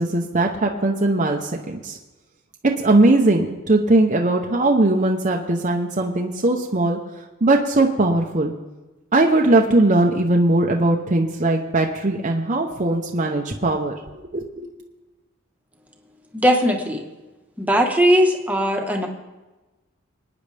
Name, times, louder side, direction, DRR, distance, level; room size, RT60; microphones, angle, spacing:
voice 1, 0.0-2.0 2.8-7.0 7.4-8.5 9.1-14.7, right 2 dB, 35° right, 1 dB, 0.9 m, -19 dB
voice 2, 16.3-17.0 17.6-19.1, equal, 10° right, 2 dB, 1.4 m, -18 dB
25.0 x 9.6 x 3.4 m, 1.1 s
head